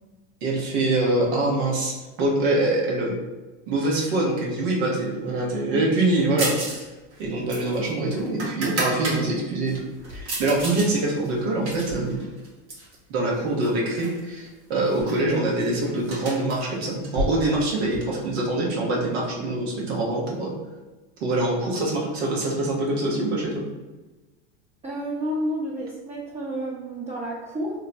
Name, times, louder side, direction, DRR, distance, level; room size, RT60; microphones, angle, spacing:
voice 1, 0.4-3.1 3.7-6.8 7.2-9.7 10.1-12.2 13.1-20.5 21.2-23.6, right 2 dB, 70° right, -2 dB, 1.2 m, -24 dB
sound 1, 6.4-6.8 7.1-9.2 9.7-10.9 11.2-12.9 13.6-14.2 14.5-14.6 14.9-18.0, right 1 dB, 85° right, 1.3 m, -32 dB
voice 2, 24.8-27.7, equal, 20° right, -6 dB, 0.7 m, -30 dB
2.9 x 2.1 x 4.0 m, 1.1 s
hypercardioid pair, 95°, 33 cm